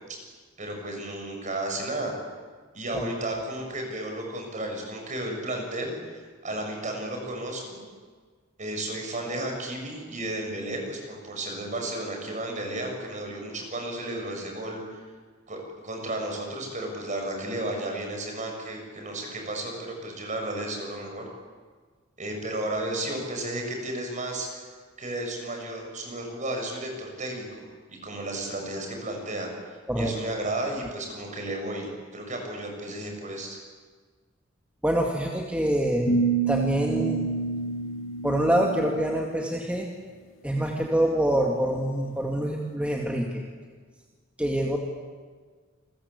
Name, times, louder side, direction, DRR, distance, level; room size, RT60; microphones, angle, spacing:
voice 1, 0.6-2.1 2.7-7.8 8.6-15.0 15.5-21.3 22.2-24.6 25.0-27.6 27.9-33.6, right 1 dB, 40° right, 2 dB, 7.2 m, -33 dB
voice 2, 34.8-36.1 36.4-37.2 38.2-39.9 40.4-43.4 44.4-44.8, right 1 dB, 5° right, 0 dB, 2.3 m, -25 dB
sound 1, 36.1-39.2, right 4 dB, 90° left, 2.3 m, -28 dB
29.0 x 22.0 x 8.4 m, 1.5 s
head